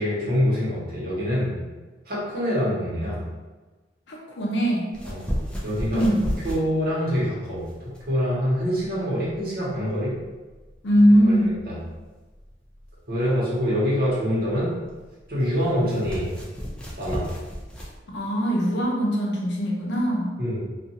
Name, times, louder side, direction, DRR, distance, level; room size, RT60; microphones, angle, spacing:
voice 1, 0.0-1.5 2.1-3.2 5.0-5.3 5.6-6.0 6.4-10.1 11.6-11.8 13.1-14.7 15.3-16.3 17.0-17.3 20.4-20.6, equal, 55° right, -8 dB, 1.1 m, -25 dB
voice 2, 4.1-4.9 5.9-6.3 10.8-11.5 18.1-20.3, equal, 65° left, -2 dB, 0.6 m, -21 dB
sound 1, 4.9-18.0, equal, 5° left, 0.4 m, -35 dB
2.5 x 2.3 x 2.7 m, 1.2 s
head